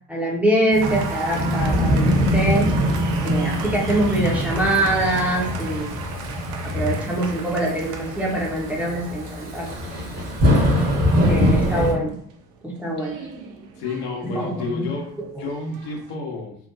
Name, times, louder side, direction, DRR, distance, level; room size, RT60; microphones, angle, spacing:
voice 1, 0.1-2.8 3.2-6.0 6.6-9.7 11.3-12.1 12.6-13.2 14.2-14.9 15.3-15.4, right 1 dB, 5° right, -4 dB, 0.7 m, -24 dB
Thunderstorm / Rain, 0.7-11.9, equal, 35° right, 1.0 m, -23 dB
Applause, 0.8-16.1, right 5 dB, 55° right, 0.6 m, -37 dB
voice 2, 13.8-16.6, left 3 dB, 55° left, 1 dB, 0.8 m, -31 dB
2.9 x 2.1 x 2.4 m, 0.62 s
figure-of-eight pair, 50°, 46 cm